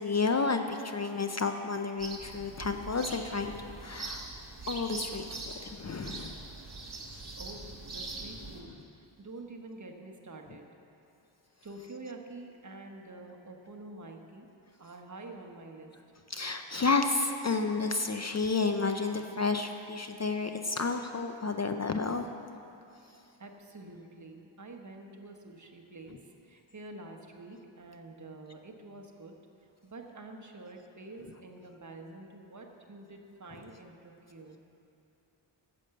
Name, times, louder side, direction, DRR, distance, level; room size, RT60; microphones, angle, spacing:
voice 1, 0.0-4.3 4.7-6.4 16.3-22.3, left 4 dB, 35° left, 6 dB, 0.5 m, -31 dB
sound 1, 2.0-8.6, right 3 dB, 60° right, 1.9 m, -42 dB
voice 2, 7.4-8.7 9.0-10.7 11.6-14.5 14.8-15.9 23.4-26.2 26.4-29.3 29.6-34.6, right 2 dB, 40° right, 2 dB, 1.1 m, -47 dB
10.5 x 6.9 x 7.6 m, 2.8 s
wide cardioid pair, 95°, 45 cm